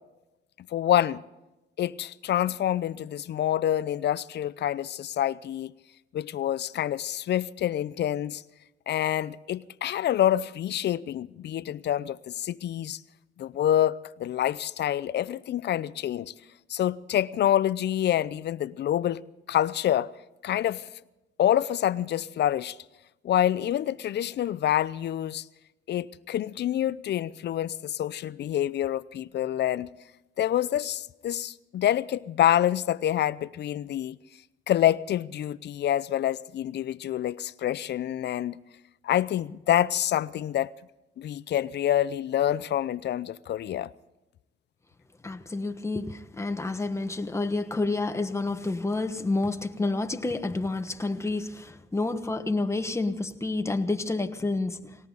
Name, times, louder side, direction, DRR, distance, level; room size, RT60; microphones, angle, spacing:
voice 1, 0.7-1.2 1.8-5.7 6.1-8.4 8.9-13.0 13.4-16.3 16.7-19.2 19.5-20.1 20.4-20.9 21.4-22.8 23.2-25.4 25.9-29.9 30.4-34.2 34.7-38.6 39.0-40.7 41.2-43.9, left 11 dB, 60° left, 0.6 m, -27 dB
voice 2, 45.2-55.0, left 2 dB, 15° left, 1.2 m, -29 dB
19.0 x 19.0 x 4.0 m
cardioid pair, 90°, 20 cm